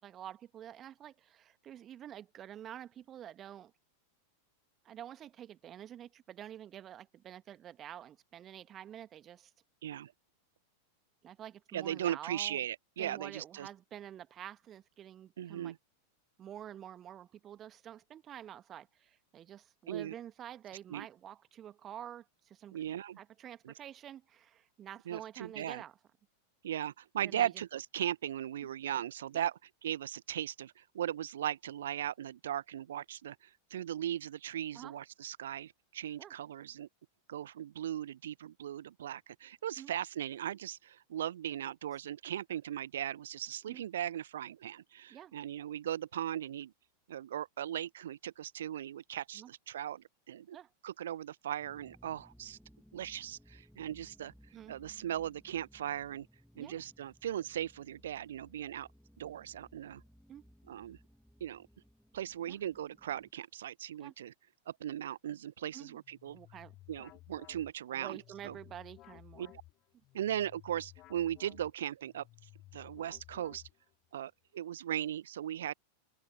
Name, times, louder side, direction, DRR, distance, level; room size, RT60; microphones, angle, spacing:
voice 1, 0.0-3.7 4.8-9.5 11.2-12.6 13.0-15.7 16.4-22.8 23.2-25.9 27.2-27.5 28.6-28.7 29.3-29.5 34.7-34.9 36.2-36.3 39.8-39.9 43.7-43.9 45.1-45.3 49.3-49.5 50.5-50.7 54.5-54.7 56.5-56.8 60.3-60.4 62.5-62.6 64.0-64.1 65.7-66.0 66.3-66.8 67.9-69.5, right 10 dB, 30° right, 1.8 m, -48 dB
voice 2, 9.8-10.1 11.7-13.7 15.4-15.8 19.9-20.1 20.9-21.1 22.7-23.2 23.6-23.7 25.1-25.8 26.6-29.5 29.8-36.9 37.3-46.7 47.1-50.6 50.8-52.6 52.9-54.3 54.7-56.3 56.6-58.9 59.2-60.0 60.7-61.0 61.4-61.7 62.1-64.3 64.7-66.4 66.9-68.2 68.4-68.6 69.4-69.5 70.1-72.2 72.7-73.6 74.1-75.7, right 11 dB, 60° right, 1.2 m, -38 dB
sound 1, 51.6-63.3, equal, ahead, 2.6 m, -62 dB
sound 2, 66.0-74.1, left 17 dB, 35° left, 3.6 m, -57 dB
open air
figure-of-eight pair, 90°, 0 cm